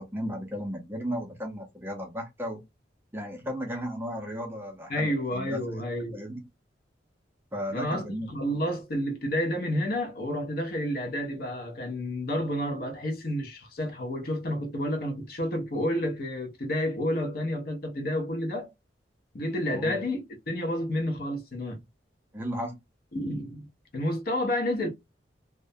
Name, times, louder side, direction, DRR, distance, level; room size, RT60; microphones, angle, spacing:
voice 1, 0.0-2.6 3.1-5.6 6.1-6.4 7.5-8.3 19.7-20.0 22.3-22.8, equal, 10° right, 0.5 m, -35 dB
voice 2, 4.9-6.2 7.7-18.7 19.3-21.8 23.1-23.7 23.9-24.9, left 1 dB, 55° left, 0.6 m, -30 dB
2.4 x 2.1 x 2.6 m
head